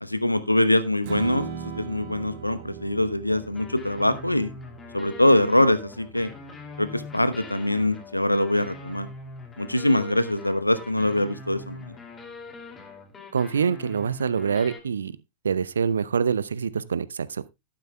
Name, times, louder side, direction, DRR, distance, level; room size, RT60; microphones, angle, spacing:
voice 1, 0.0-4.5 4.9-6.3 6.8-9.1 9.6-12.0, left 1 dB, 85° left, 0.9 m, -23 dB
Strum, 1.0-7.3, right 7 dB, 50° right, 2.2 m, -40 dB
sound 1, 3.3-14.8, left 3 dB, 20° left, 2.6 m, -43 dB
voice 2, 13.3-15.2 15.4-17.5, right 6 dB, 70° right, 0.6 m, -25 dB
12.5 x 11.5 x 2.3 m
figure-of-eight pair, 90°, 0 cm